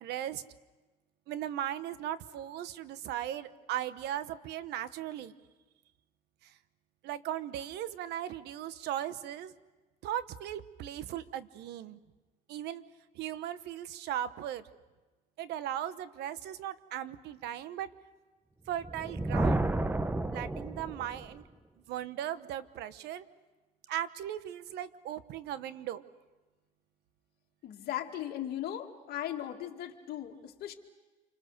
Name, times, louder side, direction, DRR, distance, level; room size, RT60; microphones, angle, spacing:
voice 1, 0.0-0.4 1.3-5.4 6.4-6.5 7.0-9.5 10.0-12.0 12.5-12.8 13.1-14.6 15.4-17.9 18.7-19.7 20.3-21.4 21.9-23.2 23.9-26.0, right 11 dB, 85° right, 14 dB, 1.0 m, -37 dB
Thunder, 18.7-21.4, right 2 dB, 10° right, 0.8 m, -31 dB
voice 2, 27.6-30.7, left 11 dB, 70° left, 2 dB, 2.2 m, -38 dB
28.0 x 25.5 x 6.6 m, 1.2 s
cardioid pair, 110°, 17 cm